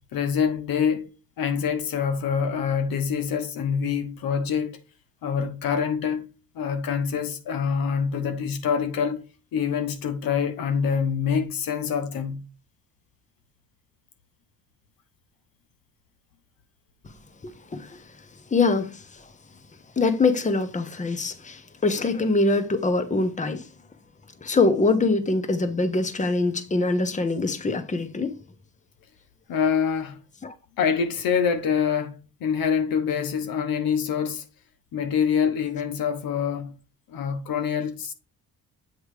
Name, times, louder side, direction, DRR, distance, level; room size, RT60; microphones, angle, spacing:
voice 1, 0.1-1.1 1.4-4.8 5.2-6.3 6.5-9.2 9.5-12.4 29.5-30.2 30.8-34.5 34.9-36.7 37.1-38.1, left 7 dB, 75° left, 1.2 m, -25 dB
voice 2, 17.4-18.2 18.5-19.3 20.0-23.7 24.4-28.4 30.4-30.5, left 3 dB, 20° left, 1.0 m, -24 dB
8.3 x 3.1 x 4.9 m
cardioid pair, 90°, 36 cm